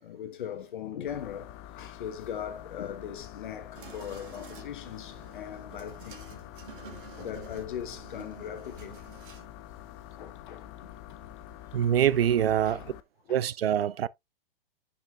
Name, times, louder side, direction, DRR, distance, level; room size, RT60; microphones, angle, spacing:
voice 1, 0.0-6.3 6.8-6.9 7.1-9.0 10.2-11.0 11.8-11.9 12.6-12.8 13.3-13.4, left 9 dB, 55° left, 1.2 m, -39 dB
sound 1, 1.1-13.0, left 13 dB, 20° left, 0.4 m, -46 dB
sound 2, 3.7-9.5, right 6 dB, 60° right, 2.1 m, -49 dB
voice 2, 11.7-12.8 13.3-14.1, right 10 dB, 80° right, 0.5 m, -24 dB
9.9 x 5.6 x 2.3 m
hypercardioid pair, 120°, 29 cm